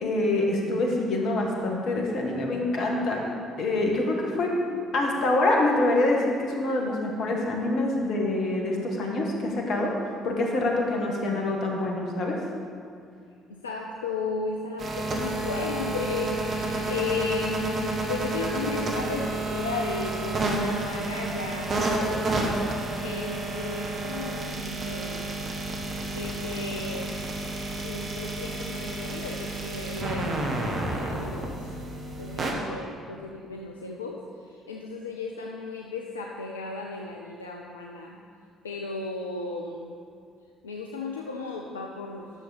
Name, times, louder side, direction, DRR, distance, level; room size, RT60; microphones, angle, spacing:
voice 1, 0.0-3.2 3.6-4.5 4.9-9.9 10.2-12.4, left 2 dB, 55° left, 0 dB, 1.5 m, -25 dB
voice 2, 13.5-22.5 23.0-25.5 26.1-27.2 27.7-31.7 32.2-38.2 38.6-39.9 40.6-42.3, left 4 dB, 85° left, 0 dB, 0.5 m, -35 dB
sound 1, 14.8-32.5, right 2 dB, 45° right, 1.4 m, -30 dB
10.5 x 6.9 x 4.1 m, 2.3 s
figure-of-eight pair, 50°, 0 cm